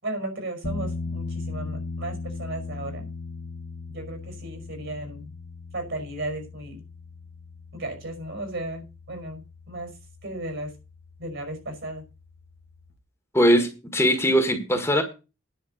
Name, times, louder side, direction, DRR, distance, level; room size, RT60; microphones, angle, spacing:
voice 1, 0.0-3.1 3.9-5.3 5.7-6.8 7.7-9.4 9.7-10.0 10.2-10.7 11.2-12.0, right 1 dB, 60° right, 5.4 m, -35 dB
sound 1, 0.6-13.0, left 3 dB, 50° left, 1.3 m, -38 dB
voice 2, 13.3-15.0, equal, 10° left, 1.5 m, -20 dB
10.0 x 5.8 x 7.9 m
head